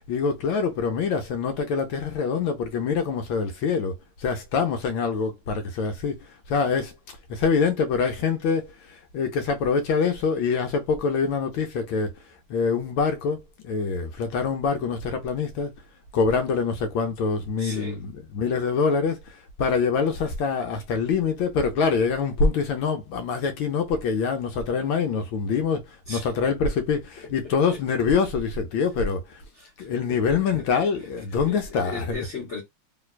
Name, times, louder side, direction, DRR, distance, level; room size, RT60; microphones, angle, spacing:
voice 1, 0.0-6.9 7.3-12.1 12.5-15.7 16.1-29.4 29.8-32.2, left 5 dB, 75° left, 1.3 m, -25 dB
voice 2, 17.6-18.1 26.1-26.3 27.7-27.8 29.5-30.6 31.5-32.6, left 4 dB, 50° left, 0.9 m, -37 dB
3.4 x 2.9 x 2.3 m
omnidirectional pair, 2.3 m